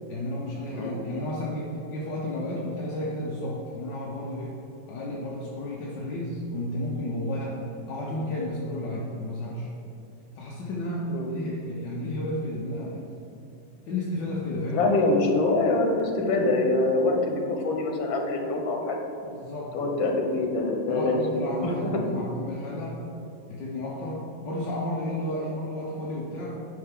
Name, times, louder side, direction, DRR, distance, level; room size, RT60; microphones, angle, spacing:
voice 1, 0.1-4.5 4.9-7.6 7.9-9.7 10.3-13.0 13.8-14.9 19.2-19.8 20.9-23.0 23.5-26.5, left 1 dB, 70° left, -5 dB, 1.6 m, -32 dB
voice 2, 14.7-19.0 19.7-21.2 21.6-21.7, left 2 dB, 90° left, 2 dB, 1.8 m, -24 dB
10.0 x 5.6 x 3.7 m, 2.8 s
omnidirectional pair, 2.1 m